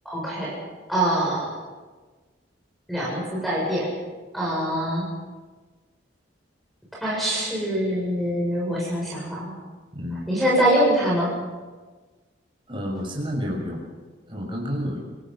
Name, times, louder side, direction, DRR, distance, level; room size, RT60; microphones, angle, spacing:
voice 1, 0.1-0.5 0.9-1.5 2.9-3.9 4.3-5.1 7.0-9.5 10.3-11.3, right 1 dB, ahead, -5 dB, 7.0 m, -24 dB
voice 2, 9.9-10.3 12.7-13.8 14.3-15.0, equal, 25° right, -1 dB, 6.5 m, -30 dB
28.5 x 19.0 x 5.7 m, 1.3 s
head